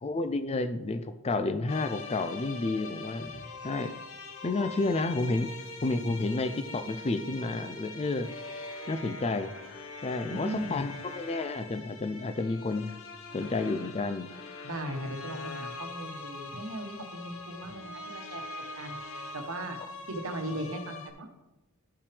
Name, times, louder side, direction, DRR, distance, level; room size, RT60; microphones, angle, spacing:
voice 1, 0.0-3.9 4.4-5.5 5.8-8.3 8.9-9.6 10.0-13.0 13.3-14.3, left 3 dB, 30° left, 10 dB, 0.4 m, -31 dB
sound 1, 1.7-21.1, left 3 dB, 65° left, 0.9 m, -43 dB
voice 2, 10.2-10.8 14.6-18.4 18.7-19.8 20.1-21.3, right 1 dB, 65° right, 4 dB, 1.2 m, -38 dB
12.5 x 5.7 x 3.4 m, 1.0 s
head